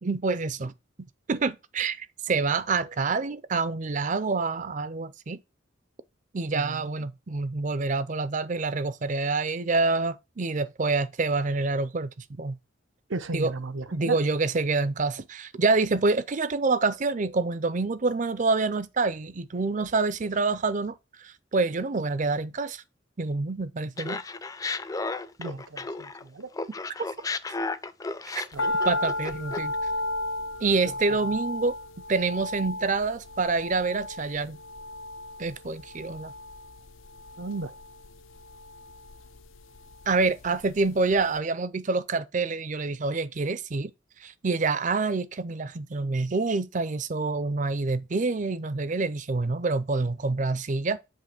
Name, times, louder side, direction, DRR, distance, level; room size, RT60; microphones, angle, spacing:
voice 1, 0.0-0.7 1.3-5.4 6.3-12.6 13.3-13.5 13.9-22.8 23.2-24.2 28.3-28.4 28.8-29.7 30.6-31.7 32.1-34.6 35.4-36.3 40.1-43.9 44.2-51.0, right 3 dB, 40° right, 0.5 m, -27 dB
voice 2, 6.5-6.9 13.1-14.2 25.4-26.5 28.5-28.7 30.8-30.9 37.4-37.7, right 3 dB, 75° right, 0.8 m, -34 dB
Laughter, 24.0-26.2 26.5-29.8, left 3 dB, 20° left, 0.4 m, -33 dB
sound 1, 28.6-40.9 41.1-41.2, left 1 dB, 85° left, 0.6 m, -34 dB
7.5 x 3.0 x 5.9 m
head